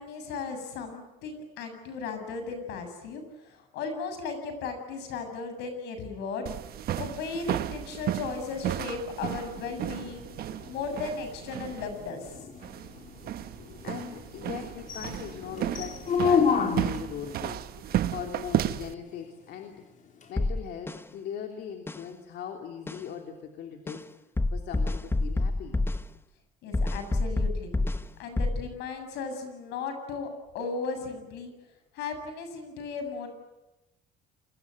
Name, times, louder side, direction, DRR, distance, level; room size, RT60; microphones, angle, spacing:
voice 1, 0.0-10.3 10.7-12.5 26.6-27.7 28.2-30.3 30.5-31.5 31.9-33.3, left 4 dB, 85° left, 7 dB, 7.8 m, -36 dB
sound 1, 6.5-18.9, right 12 dB, 65° right, 1.3 m, -34 dB
sound 2, 9.3-17.2 20.2-20.3, left 6 dB, 50° left, 4.4 m, -31 dB
voice 2, 13.6-19.8 20.3-24.1 24.5-25.8, left 8 dB, 70° left, 4 dB, 3.2 m, -40 dB
sound 3, 20.4-21.0 21.9-22.0 22.9-23.0 23.9-24.0 24.4-26.0 26.7-28.0 28.4-28.6, left 2 dB, 15° left, 1.1 m, -27 dB
29.0 x 22.0 x 9.4 m, 1.0 s
cardioid pair, 110°, 17 cm